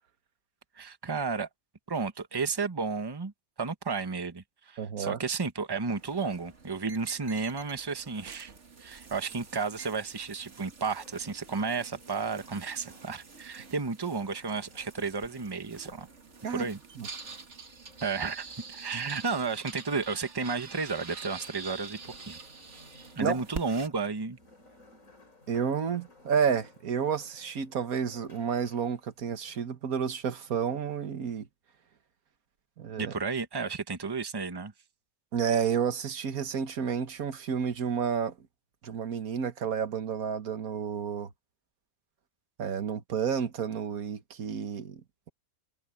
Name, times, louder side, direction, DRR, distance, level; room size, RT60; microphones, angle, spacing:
voice 1, 0.8-1.5 1.9-3.3 3.6-8.5 8.8-16.1 16.5-16.8 18.0-22.4 23.2-24.4 33.0-34.7, right 4 dB, 20° right, 1.0 m, -32 dB
voice 2, 4.8-5.2 16.4-16.7 17.0-17.1 23.2-23.4 25.5-31.5 32.8-33.1 35.3-38.4 38.8-41.3 42.6-45.3, right 7 dB, 75° right, 1.7 m, -30 dB
sound 1, 6.0-23.9, right 4 dB, 50° right, 2.1 m, -47 dB
sound 2, 10.9-29.6, left 2 dB, 60° left, 5.2 m, -59 dB
omnidirectional pair, 1.5 m